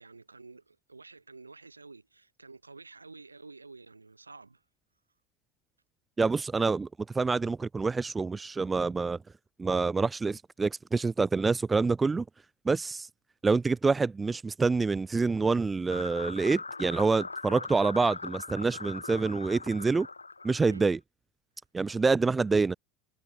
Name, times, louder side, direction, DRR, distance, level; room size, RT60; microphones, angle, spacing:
voice 1, 0.0-4.6 20.6-20.8, right 3 dB, 85° right, 7.5 m, -50 dB
voice 2, 6.2-6.9 7.1-9.2 9.6-12.2 12.7-13.1 13.4-20.1 20.4-21.0 21.7-22.7, right 4 dB, 20° right, 0.3 m, -27 dB
sound 1, 15.9-20.9, left 3 dB, 90° left, 0.4 m, -41 dB
figure-of-eight pair, 75°, 0 cm